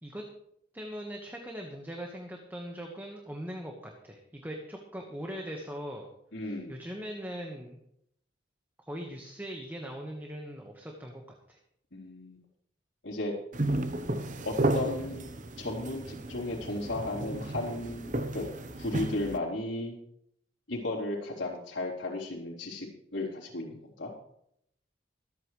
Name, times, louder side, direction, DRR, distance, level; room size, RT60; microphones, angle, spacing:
voice 1, 0.7-6.1 6.4-7.8 8.9-11.2 11.5-11.6, equal, 10° right, 1 dB, 1.4 m, -40 dB
voice 2, 6.3-6.8 11.9-12.4 13.0-13.3 14.4-15.3 15.6-18.5 18.8-20.0 20.7-22.9 23.1-24.1, left 2 dB, 90° left, -4 dB, 3.9 m, -35 dB
sound 1, 13.5-19.4, right 1 dB, 40° right, 0.9 m, -33 dB
24.5 x 8.9 x 3.2 m, 0.72 s
head